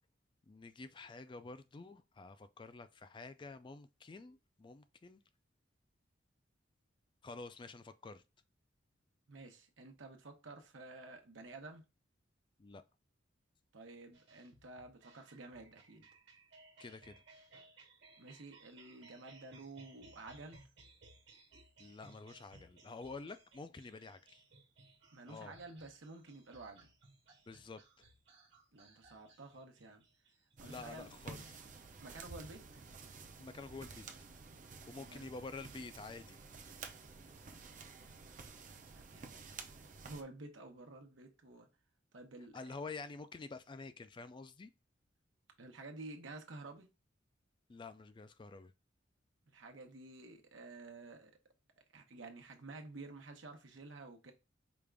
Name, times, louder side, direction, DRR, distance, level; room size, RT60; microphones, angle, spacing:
voice 1, 0.5-5.2 7.2-8.2 12.6-12.8 16.8-17.1 21.8-24.4 25.3-25.5 27.5-28.0 30.6-31.6 33.4-34.1 34.9-36.4 42.5-44.7 47.7-48.7, left 3 dB, 25° left, 0.3 m, -49 dB
voice 2, 9.3-11.8 13.7-16.1 18.2-20.7 25.1-26.9 28.7-30.0 30.6-31.1 32.0-32.6 34.9-35.2 38.9-39.5 40.0-41.7 42.1-42.8 45.6-46.9 49.5-51.3 51.9-54.3, right 2 dB, 85° right, 1.0 m, -51 dB
sound 1, 14.1-31.9, right 3 dB, 65° right, 1.4 m, -62 dB
sound 2, 30.6-40.2, right 4 dB, 40° right, 0.6 m, -52 dB
5.1 x 2.4 x 3.4 m
head